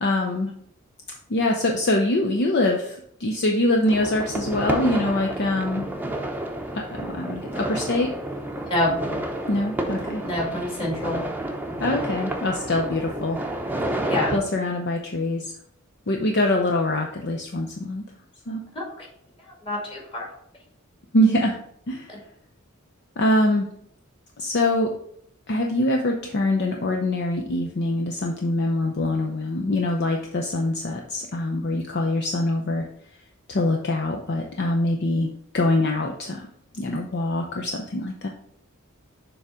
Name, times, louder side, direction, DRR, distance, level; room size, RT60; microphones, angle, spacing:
voice 1, 0.0-0.5 1.3-5.8 6.7-8.1 9.5-10.2 11.8-13.4 13.9-14.0 14.3-15.5 16.1-18.0 18.5-18.6 21.1-21.6 21.9-22.1 23.2-23.7 24.4-24.9 25.5-32.8 33.5-36.5 36.7-38.3, left 1 dB, 50° left, 2 dB, 0.6 m, -24 dB
sound 1, 3.8-14.4, right 1 dB, 10° right, 0.7 m, -30 dB
voice 2, 10.2-11.2 14.1-14.4 18.8-19.1 19.6-20.3 22.1-22.2, left 1 dB, 25° left, -2 dB, 2.1 m, -27 dB
7.0 x 3.5 x 5.0 m, 0.67 s
head